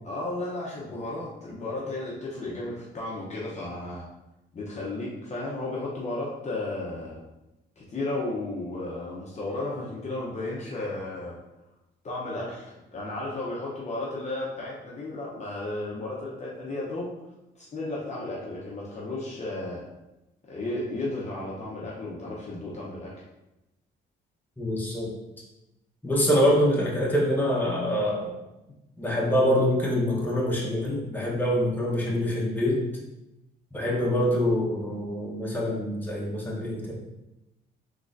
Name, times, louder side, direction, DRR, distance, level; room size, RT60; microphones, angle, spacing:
voice 1, 0.0-4.1 4.5-7.2 7.8-11.4 12.0-17.1 17.6-19.8 20.5-23.2, left 2 dB, 35° left, -5 dB, 0.8 m, -34 dB
voice 2, 24.6-25.1 26.0-28.3 29.0-32.8 33.7-36.9, equal, 10° left, -4 dB, 1.0 m, -25 dB
3.7 x 3.1 x 2.6 m, 0.96 s
cardioid pair, 90°, 20 cm